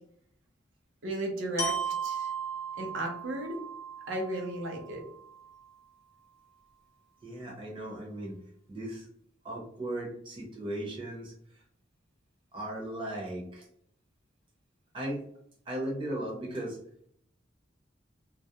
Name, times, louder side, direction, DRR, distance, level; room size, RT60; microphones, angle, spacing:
voice 1, 1.0-2.3 2.8-3.6 4.1-5.0, right 1 dB, 75° right, 1 dB, 0.6 m, -34 dB
Glockenspiel, 1.6-5.5, right 5 dB, 15° left, 0.4 m, -36 dB
voice 2, 7.2-8.4 8.7-9.1 9.4-11.3 12.5-13.7 14.9-15.2 15.7-16.8, right 1 dB, 25° right, -3 dB, 0.7 m, -37 dB
2.3 x 2.0 x 2.7 m, 0.66 s
head